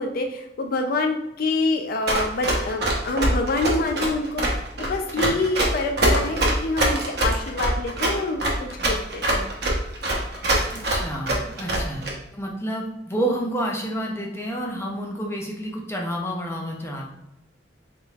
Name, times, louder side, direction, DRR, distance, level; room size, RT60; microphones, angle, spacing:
voice 1, 0.0-4.5 4.8-9.5, left 2 dB, 50° left, 4 dB, 0.4 m, -26 dB
Run, 2.1-12.1, right 1 dB, 60° right, 0.9 m, -23 dB
voice 2, 10.7-17.1, right 1 dB, 15° left, -1 dB, 0.7 m, -29 dB
4.1 x 3.8 x 2.3 m, 0.87 s
head